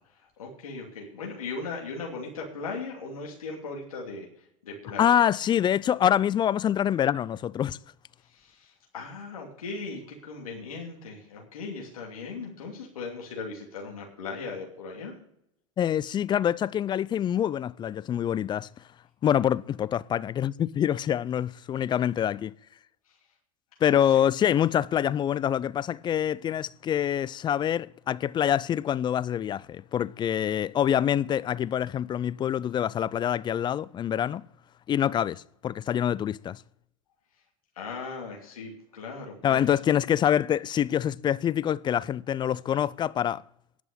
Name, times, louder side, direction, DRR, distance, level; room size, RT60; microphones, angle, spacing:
voice 1, 0.4-5.2 8.3-15.1 23.8-24.0 37.8-39.7, left 4 dB, 90° left, 2.8 m, -38 dB
voice 2, 5.0-7.8 15.8-18.7 19.2-22.5 23.8-34.4 34.9-36.6 39.4-43.4, left 10 dB, 25° left, 0.4 m, -25 dB
11.0 x 6.0 x 8.3 m
hypercardioid pair, 95°, 18 cm